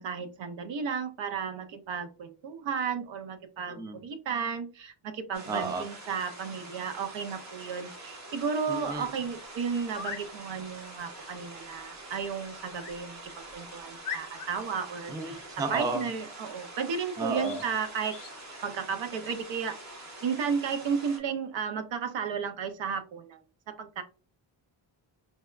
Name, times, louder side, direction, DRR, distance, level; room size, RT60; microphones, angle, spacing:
voice 1, 0.0-15.4 15.7-18.2 18.6-19.8 20.2-23.4 23.7-24.0, right 6 dB, 70° right, 8 dB, 0.6 m, -33 dB
voice 2, 3.7-4.0 5.5-5.8 8.7-9.1 15.1-16.1 17.2-17.6, right 3 dB, 10° right, 6 dB, 0.3 m, -32 dB
sound 1, 5.3-21.2, right 2 dB, 35° right, 0.9 m, -46 dB
sound 2, 9.8-10.3 12.8-13.0 13.5-13.6 14.0-14.7 17.4-17.7 18.1-18.4, left 6 dB, 45° left, 0.6 m, -39 dB
4.0 x 2.2 x 2.3 m, 0.35 s
cardioid pair, 115°, 47 cm